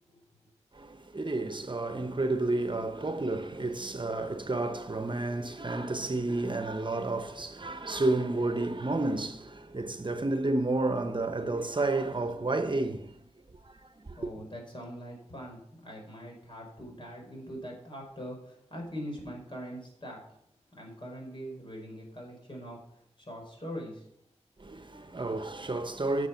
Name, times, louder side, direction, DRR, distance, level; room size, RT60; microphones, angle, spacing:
voice 1, 0.7-13.2 13.5-14.2 24.6-26.3, right 2 dB, 45° right, 1.0 m, -31 dB
voice 2, 14.2-20.2 20.7-22.8 23.2-24.1, equal, 45° left, 4.6 m, -42 dB
9.9 x 6.9 x 5.8 m
cardioid pair, 50°, 12 cm